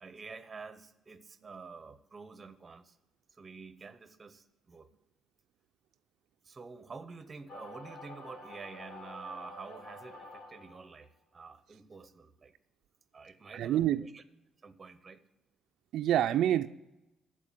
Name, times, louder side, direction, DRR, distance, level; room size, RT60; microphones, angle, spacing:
voice 1, 0.0-3.0 3.3-4.9 6.4-12.5 13.1-14.2 14.6-15.2, right 4 dB, 25° right, 13 dB, 0.7 m, -48 dB
sound 1, 7.5-11.0, left 2 dB, 70° left, 3.5 m, -48 dB
voice 2, 13.5-14.1 15.9-16.7, right 11 dB, 75° right, 9 dB, 0.3 m, -27 dB
13.5 x 4.6 x 8.4 m, 0.96 s
cardioid pair, 140°, 0 cm